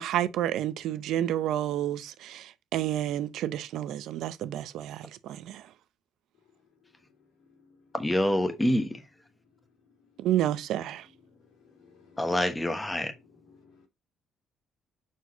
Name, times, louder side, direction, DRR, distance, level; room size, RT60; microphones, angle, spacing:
voice 1, 0.0-5.6 10.2-11.0, right 12 dB, 70° right, 0.6 m, -30 dB
voice 2, 7.9-9.0 12.2-13.1, left 1 dB, 10° left, 1.0 m, -26 dB
voice 3, 11.2-12.1 13.6-13.9, left 5 dB, 80° left, 2.7 m, -59 dB
6.3 x 4.6 x 4.0 m
cardioid pair, 150°, 0 cm